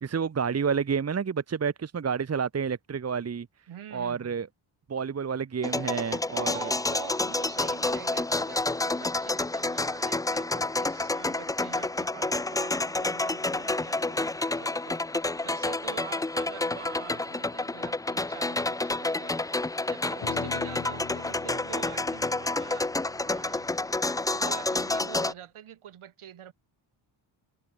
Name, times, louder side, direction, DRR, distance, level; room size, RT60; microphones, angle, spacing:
voice 1, 0.0-3.5 3.9-4.5 4.9-6.7, right 6 dB, 30° right, 1.2 m, -29 dB
voice 2, 3.7-4.4 6.3-15.0 15.4-19.4 19.9-23.7 24.3-26.5, right 10 dB, 75° right, 7.0 m, -45 dB
sound 1, 5.6-25.3, left 2 dB, 10° left, 0.3 m, -29 dB
sound 2, 20.2-24.7, left 8 dB, 55° left, 3.5 m, -44 dB
wide cardioid pair, 130°, 49 cm